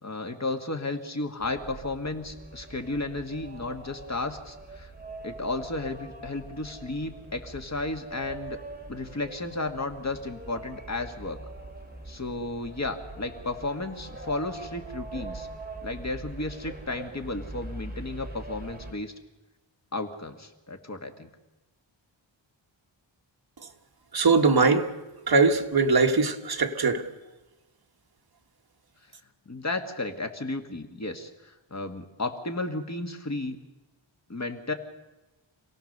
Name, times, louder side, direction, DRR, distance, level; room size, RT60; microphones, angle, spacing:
voice 1, 0.0-4.9 5.2-8.6 8.9-11.4 12.1-15.5 15.8-19.1 19.9-21.3 29.5-33.6 34.3-34.7, left 2 dB, 35° left, 1.9 m, -33 dB
sound 1, 1.4-18.9, right 2 dB, 20° right, 2.7 m, -43 dB
voice 2, 24.1-24.9 25.3-27.1, right 4 dB, 50° right, 1.6 m, -21 dB
27.5 x 17.5 x 6.7 m
wide cardioid pair, 130°, 46 cm